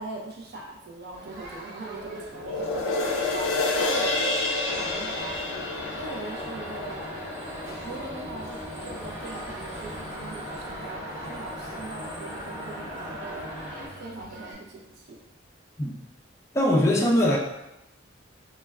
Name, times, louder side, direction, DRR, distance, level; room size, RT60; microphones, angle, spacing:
voice 1, 0.0-4.5 4.8-5.4 5.9-6.9 7.7-13.5 14.0-15.2, right 2 dB, 55° right, 0 dB, 0.5 m, -41 dB
Crowd, 1.1-14.5, right 2 dB, 85° right, 1.1 m, -45 dB
sound 1, 2.4-8.9 9.4-9.5, left 2 dB, 80° left, 0.4 m, -29 dB
sound 2, 4.6-13.9, equal, 15° right, 0.9 m, -38 dB
voice 2, 16.5-17.4, left 1 dB, 15° left, -2 dB, 0.3 m, -21 dB
2.2 x 2.2 x 3.4 m, 0.92 s
head